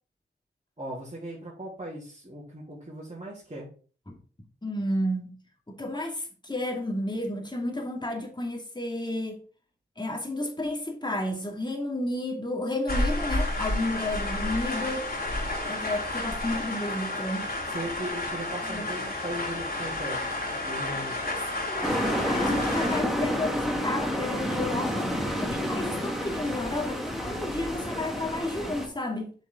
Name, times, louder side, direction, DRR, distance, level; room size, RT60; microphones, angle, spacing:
voice 1, 0.8-3.7 17.7-20.2 20.5-21.2, right 1 dB, 35° right, 3.4 m, -38 dB
voice 2, 4.6-5.4 5.7-9.4 10.0-15.1 15.7-17.5 18.6-18.9 21.3-25.1 25.4-29.3, left 1 dB, 25° left, 2.4 m, -32 dB
sound 1, 12.9-23.0, left 2 dB, 50° left, 3.1 m, -31 dB
sound 2, 21.8-28.9, equal, ahead, 2.3 m, -29 dB
8.0 x 5.3 x 3.9 m
cardioid pair, 50°, 20 cm